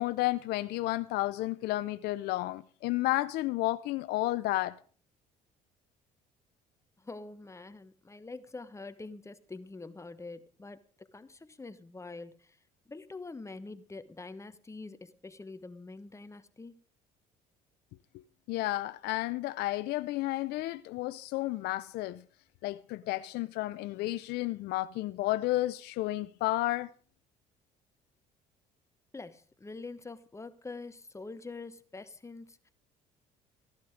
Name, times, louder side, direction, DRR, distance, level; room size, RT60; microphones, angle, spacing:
voice 1, 0.0-4.8 18.5-22.2 22.6-26.9, left 17 dB, 70° left, 0.6 m, -32 dB
voice 2, 7.0-12.6 12.9-16.8 29.1-32.7, left 3 dB, 15° left, 1.2 m, -45 dB
15.5 x 11.0 x 5.1 m
supercardioid pair, 80°, 17 cm